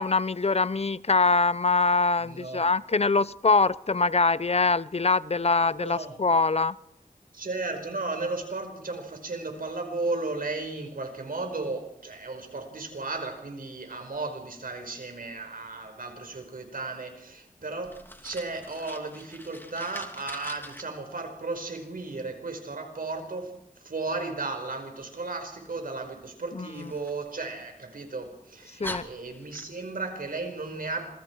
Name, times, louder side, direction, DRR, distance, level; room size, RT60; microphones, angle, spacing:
voice 1, 0.0-6.8 26.5-26.7 28.8-29.1, left 3 dB, 45° left, 18 dB, 0.7 m, -23 dB
voice 2, 2.2-2.7 5.6-6.2 7.3-17.9 18.2-23.5 23.8-31.1, right 3 dB, 85° right, 5 dB, 5.1 m, -35 dB
Fire, 17.8-20.8 26.7-28.0 28.4-28.5 28.8-30.0, left 1 dB, 15° left, 2.9 m, -42 dB
27.0 x 23.0 x 4.7 m, 0.82 s
wide cardioid pair, 45°, 14 cm